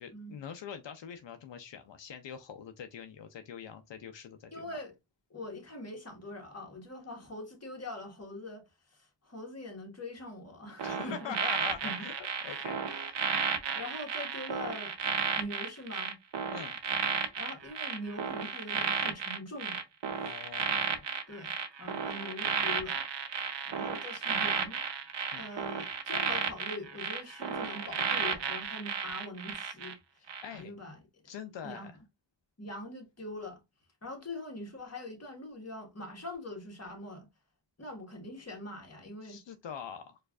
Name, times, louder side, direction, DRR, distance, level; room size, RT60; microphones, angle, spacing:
voice 1, 0.0-4.7 10.8-13.3 16.5-16.7 20.2-21.1 25.3-25.4 30.4-30.7 31.2-32.0 39.2-40.2, left 7 dB, 80° left, 0.5 m, -44 dB
voice 2, 4.5-4.9 5.3-11.4 11.8-12.0 12.4-12.7 13.7-15.0 15.4-16.2 17.4-19.8 21.3-23.0 23.6-24.8 25.4-31.2 31.6-31.9 32.6-33.6 34.0-37.3 37.8-39.4, left 1 dB, 35° left, 1.4 m, -43 dB
sound 1, 10.8-29.9 30.3-30.6, right 6 dB, 75° right, 0.7 m, -33 dB
4.5 x 2.5 x 2.3 m
wide cardioid pair, 50°, 43 cm